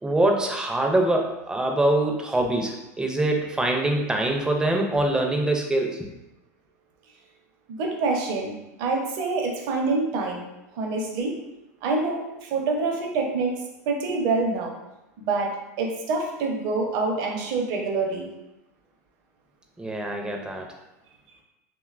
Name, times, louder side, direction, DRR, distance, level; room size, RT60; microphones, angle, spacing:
voice 1, 0.0-6.1 19.8-20.7, right 1 dB, 10° right, 2 dB, 0.4 m, -24 dB
voice 2, 7.7-10.4 10.7-11.4 11.8-13.5 13.9-14.7 15.2-18.3, right 3 dB, 55° right, 1 dB, 0.6 m, -26 dB
2.8 x 2.1 x 2.4 m, 0.94 s
hypercardioid pair, 100°, 9 cm